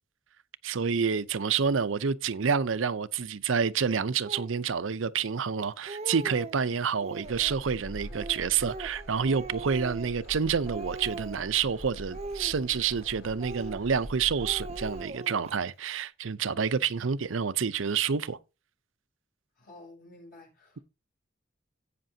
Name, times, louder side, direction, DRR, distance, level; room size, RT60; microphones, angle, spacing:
voice 1, 0.6-18.4, right 6 dB, 80° right, 0.6 m, -28 dB
Speech, 4.2-4.6 5.3-5.4 5.7-6.6 7.0-7.6 8.1-10.4 10.7-11.6 12.1-13.0 13.4-14.1 14.4-15.6, right 3 dB, 35° right, 0.6 m, -41 dB
sound 1, 7.2-15.1, equal, 70° left, 4.8 m, -44 dB
voice 2, 19.6-20.8, left 2 dB, 50° left, 6.5 m, -51 dB
16.5 x 6.0 x 2.8 m
head